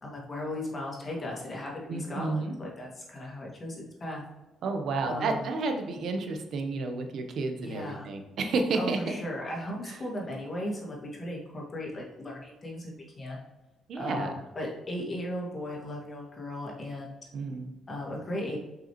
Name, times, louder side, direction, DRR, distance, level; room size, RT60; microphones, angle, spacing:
voice 1, 0.0-4.2 5.0-5.5 7.6-8.1 8.7-13.4 13.9-17.2 17.9-18.6, left 1 dB, 35° left, -2 dB, 2.3 m, -36 dB
voice 2, 1.9-2.5 4.6-9.0 13.9-14.3 17.3-17.7, right 3 dB, 65° right, 5 dB, 1.0 m, -31 dB
6.6 x 5.4 x 3.1 m, 1.1 s
cardioid pair, 90°, 0 cm